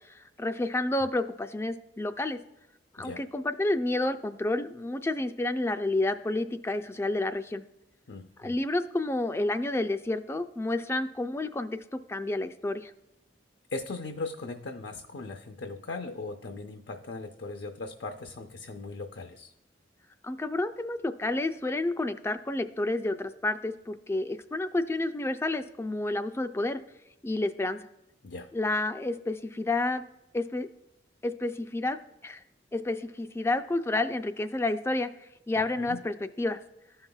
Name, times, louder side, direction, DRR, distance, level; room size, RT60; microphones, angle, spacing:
voice 1, 0.1-2.4 3.0-7.6 8.4-12.9 20.2-26.8 27.2-27.8 28.5-30.0 30.3-30.7 31.2-32.0 32.2-32.4 32.7-35.1 35.5-36.6, left 2 dB, 15° left, 9 dB, 0.3 m, -30 dB
voice 2, 8.1-8.6 13.7-19.5 28.2-28.5 35.8-36.0, left 3 dB, 70° left, 5 dB, 0.6 m, -39 dB
14.5 x 5.6 x 2.3 m, 0.89 s
head